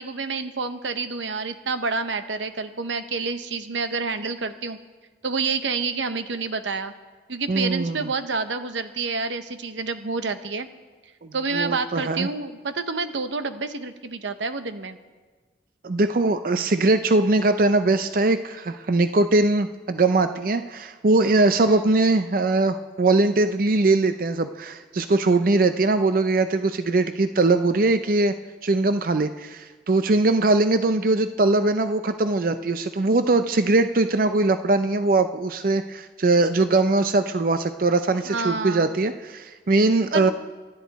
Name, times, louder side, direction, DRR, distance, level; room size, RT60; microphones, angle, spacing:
voice 1, 0.0-4.8 5.2-6.9 7.3-10.7 11.3-15.0 38.2-38.9 40.1-40.3, right 4 dB, 90° right, 10 dB, 0.9 m, -28 dB
voice 2, 7.5-8.1 11.5-12.3 15.8-28.3 28.6-40.3, right 2 dB, 50° right, 9 dB, 0.5 m, -21 dB
25.5 x 10.0 x 4.1 m, 1.4 s
head